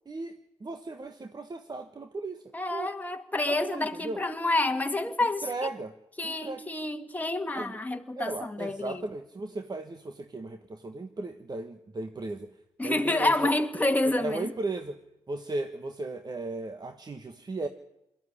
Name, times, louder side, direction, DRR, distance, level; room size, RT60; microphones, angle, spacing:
voice 1, 0.6-2.9 3.5-4.2 5.2-5.9 6.2-6.6 7.5-7.8 8.2-12.5 12.8-13.5 14.1-15.0 15.3-17.7, right 2 dB, 35° right, 1.4 m, -36 dB
voice 2, 2.5-5.5 6.2-9.1 12.8-14.5, left 2 dB, 15° left, 2.0 m, -28 dB
22.0 x 14.5 x 10.0 m
supercardioid pair, 55°, 12 cm